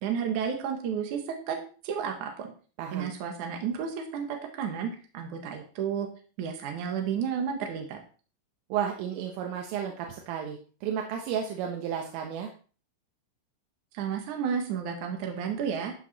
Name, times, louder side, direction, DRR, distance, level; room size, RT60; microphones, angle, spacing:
voice 1, 0.0-1.6 1.8-2.5 2.9-6.1 6.4-8.0 13.9-15.9, right 7 dB, 65° right, 4 dB, 2.0 m, -32 dB
voice 2, 2.8-3.1 8.7-12.5, right 8 dB, 85° right, 2 dB, 3.8 m, -32 dB
12.5 x 8.4 x 4.2 m, 0.38 s
omnidirectional pair, 5.7 m